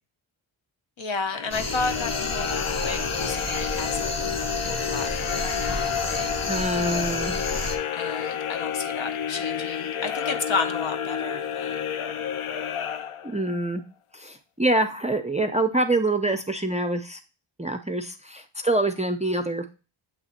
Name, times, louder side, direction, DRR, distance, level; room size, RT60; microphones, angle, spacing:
voice 1, 1.0-6.3 7.9-11.7, left 4 dB, 65° left, 8 dB, 0.9 m, -32 dB
sound 1, 1.3-13.6, left 8 dB, 85° left, 0.6 m, -30 dB
sound 2, 1.5-7.8, left 1 dB, 35° left, 1.0 m, -31 dB
voice 2, 6.5-7.3 13.2-13.8 14.1-17.2 17.6-19.6, right 2 dB, 15° right, 7 dB, 0.4 m, -25 dB
8.0 x 2.9 x 4.1 m, 0.33 s
wide cardioid pair, 115°, 49 cm